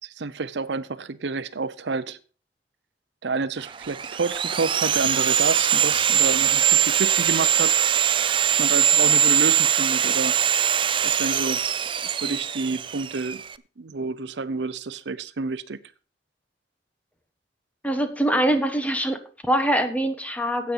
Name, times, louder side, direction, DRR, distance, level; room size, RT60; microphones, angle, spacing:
voice 1, 0.0-2.2 3.2-7.7 8.1-10.3 11.0-11.6 12.0-13.4 13.8-15.8, right 4 dB, 75° right, 0.6 m, -29 dB
Sawing, 3.7-13.5, right 8 dB, 30° right, 0.4 m, -22 dB
voice 2, 17.8-20.7, right 1 dB, 10° left, 1.3 m, -23 dB
10.0 x 8.4 x 5.4 m
head